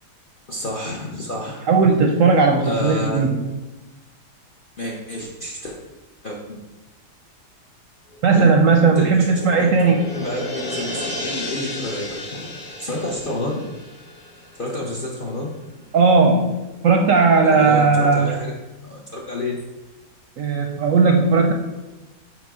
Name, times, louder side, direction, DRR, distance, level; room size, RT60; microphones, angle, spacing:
voice 1, 0.5-1.7 2.6-3.2 4.8-5.8 6.2-6.6 8.3-8.5 8.9-9.3 9.6-9.7 10.2-12.5 12.8-13.5 14.6-15.5 17.4-18.5 18.8-19.6, left 1 dB, 50° left, -2 dB, 0.6 m, -29 dB
voice 2, 1.7-3.4 8.2-10.0 15.9-18.4 20.4-21.5, right 4 dB, 65° right, 3 dB, 0.8 m, -16 dB
sound 1, 8.1-15.1 15.4-15.5, left 1 dB, 90° left, 1.7 m, -33 dB
6.0 x 3.5 x 4.9 m, 1.1 s
omnidirectional pair, 1.8 m